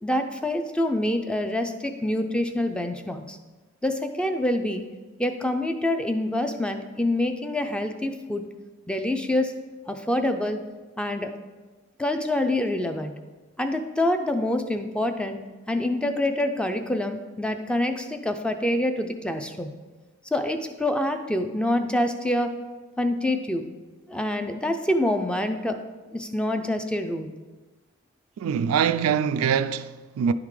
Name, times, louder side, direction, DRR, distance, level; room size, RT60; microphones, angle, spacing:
voice 1, 0.0-3.4 3.8-4.8 5.2-8.4 8.9-9.5 9.9-10.6 11.0-11.3 12.0-13.1 13.6-15.4 15.7-19.7 20.3-22.5 23.0-23.6 24.1-25.8 26.1-27.3, left 1 dB, 5° left, 0.4 m, -26 dB
voice 2, 28.4-30.3, right 7 dB, 90° right, 0.3 m, -24 dB
10.0 x 3.6 x 4.8 m
head